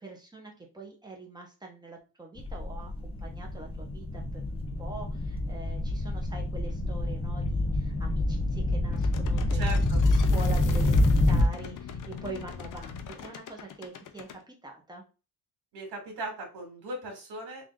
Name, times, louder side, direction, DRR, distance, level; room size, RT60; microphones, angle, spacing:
voice 1, 0.0-15.0, right 3 dB, 10° right, 0 dB, 1.1 m, -44 dB
sound 1, 2.4-11.5, left 2 dB, 15° left, 0.5 m, -26 dB
sound 2, 8.9-14.4, left 7 dB, 50° left, 0.7 m, -42 dB
voice 2, 9.5-10.0 15.7-17.6, right 1 dB, 75° right, 0 dB, 2.1 m, -38 dB
3.6 x 2.8 x 3.6 m, 0.31 s
cardioid pair, 140°, 39 cm